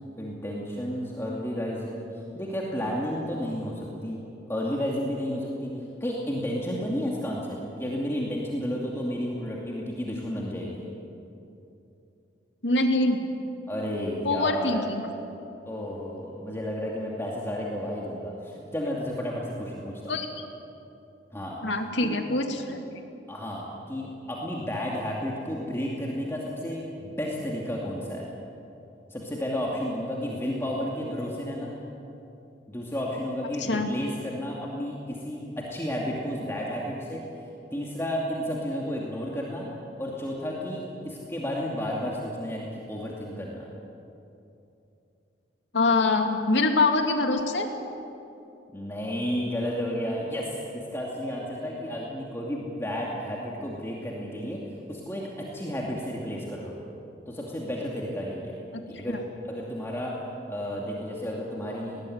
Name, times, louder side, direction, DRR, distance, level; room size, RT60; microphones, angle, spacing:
voice 1, 0.1-4.2 4.5-5.7 6.0-10.9 13.7-14.9 15.7-20.2 21.3-21.6 22.0-22.2 23.3-28.3 29.1-31.7 32.7-37.2 37.7-39.7 40.0-43.7 48.7-54.6 54.9-56.8 57.3-58.6 58.9-59.2 59.5-60.1 60.5-62.0, equal, 15° left, -3 dB, 2.5 m, -32 dB
voice 2, 12.6-13.2 14.2-15.1 20.1-20.3 21.6-22.8 33.6-33.9 45.7-47.7 58.7-58.8 59.1-59.2, left 2 dB, 90° left, 4 dB, 2.4 m, -24 dB
20.0 x 19.0 x 9.5 m, 2.8 s
head